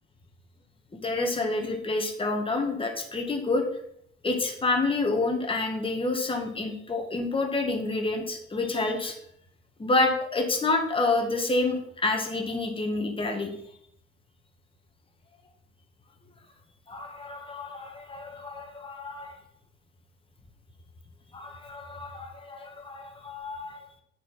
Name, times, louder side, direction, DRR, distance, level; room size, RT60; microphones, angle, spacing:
voice 1, 1.0-3.6 4.2-9.1 9.8-13.5 16.9-19.3 21.3-23.8, left 2 dB, 15° left, 3 dB, 1.6 m, -28 dB
8.1 x 4.8 x 5.6 m, 0.73 s
figure-of-eight pair, 55°, 31 cm